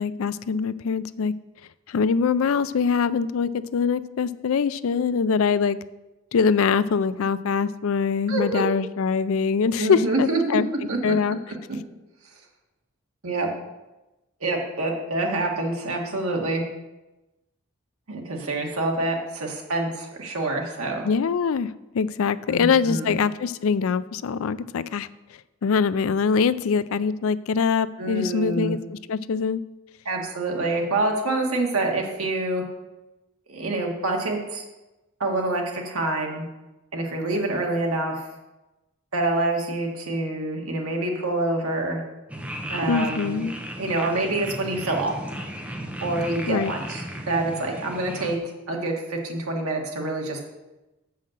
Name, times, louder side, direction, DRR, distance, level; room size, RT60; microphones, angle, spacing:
voice 1, 0.0-1.3 1.9-5.8 6.3-10.7 11.0-11.4 21.0-25.1 25.6-29.6 42.9-43.5 46.5-46.7, left 5 dB, 70° left, 15 dB, 0.4 m, -23 dB
voice 2, 8.3-8.6 9.8-10.4 10.9-11.2 13.2-13.5 14.4-16.6 18.1-21.0 22.5-23.1 28.0-28.7 30.0-32.6 33.5-34.6 35.2-36.5 36.9-38.3 39.1-42.0 42.7-43.5 43.8-45.1 46.0-50.4, right 2 dB, 80° right, 1 dB, 1.7 m, -26 dB
sound 1, 42.3-48.4, equal, 5° right, 0.7 m, -35 dB
7.5 x 5.6 x 6.5 m, 1.0 s
head